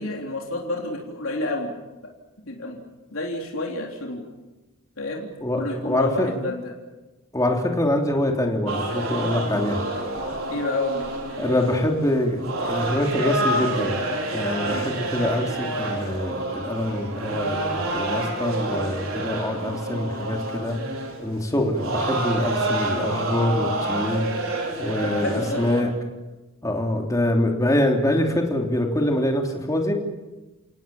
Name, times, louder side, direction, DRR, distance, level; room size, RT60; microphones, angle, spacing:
voice 1, 0.0-1.7 2.5-2.8 3.1-4.2 5.0-5.3 5.6-6.7 10.5-11.1 25.0-25.6, left 2 dB, 70° left, 0 dB, 3.7 m, -29 dB
voice 2, 5.4-6.3 7.3-9.8 11.4-14.0 14.3-20.8 21.2-24.3 24.8-25.9 26.6-29.9, left 1 dB, 15° left, 2 dB, 3.3 m, -24 dB
sound 1, 8.7-25.8, right 1 dB, 70° right, 5.3 m, -28 dB
29.5 x 18.5 x 7.2 m, 1.1 s
head